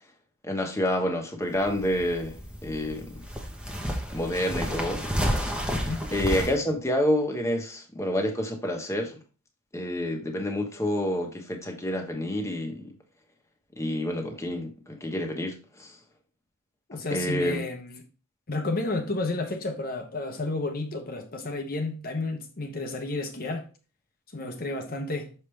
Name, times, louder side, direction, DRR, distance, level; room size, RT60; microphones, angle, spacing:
voice 1, 0.4-3.2 4.1-5.4 6.1-9.1 9.7-12.9 13.8-16.0 16.9-17.6, left 1 dB, 15° left, 1.2 m, -28 dB
sound 1, 1.4-6.5, equal, 5° right, 0.9 m, -31 dB
voice 2, 16.9-18.0 18.5-23.7 24.3-25.3, left 2 dB, 40° left, 0.9 m, -31 dB
6.5 x 5.3 x 3.3 m
head